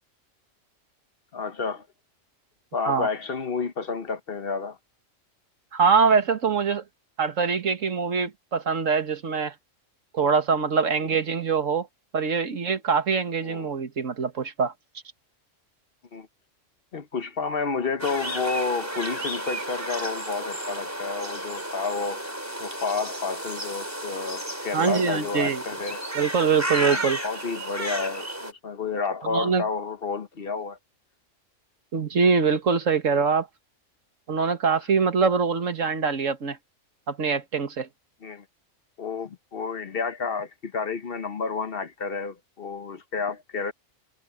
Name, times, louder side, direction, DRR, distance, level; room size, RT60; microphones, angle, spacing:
voice 1, 1.3-1.9 2.7-4.8 13.4-13.7 16.1-16.3 16.9-22.2 22.6-26.0 26.8-30.8 38.2-38.4 39.0-43.7, left 4 dB, 50° left, 1.2 m, -30 dB
voice 2, 5.7-6.8 7.2-9.5 10.1-11.9 12.1-14.7 24.7-25.6 26.2-27.2 29.3-29.6 31.9-33.5 34.3-36.6 37.1-37.9, right 5 dB, 80° right, 1.9 m, -23 dB
sound 1, 18.0-28.5, right 1 dB, 10° right, 3.7 m, -33 dB
omnidirectional pair, 1.3 m